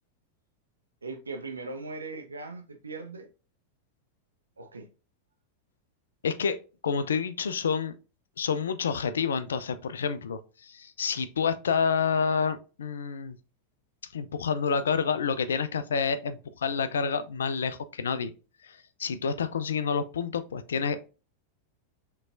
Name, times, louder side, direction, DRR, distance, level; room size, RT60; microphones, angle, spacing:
voice 1, 1.0-3.3 4.6-4.9, right 3 dB, 75° right, 0.8 m, -39 dB
voice 2, 6.2-6.6 6.8-7.9 8.4-13.4 14.1-18.3 18.6-21.1, left 6 dB, 65° left, 0.4 m, -28 dB
6.1 x 3.2 x 2.4 m
figure-of-eight pair, 90°, 0 cm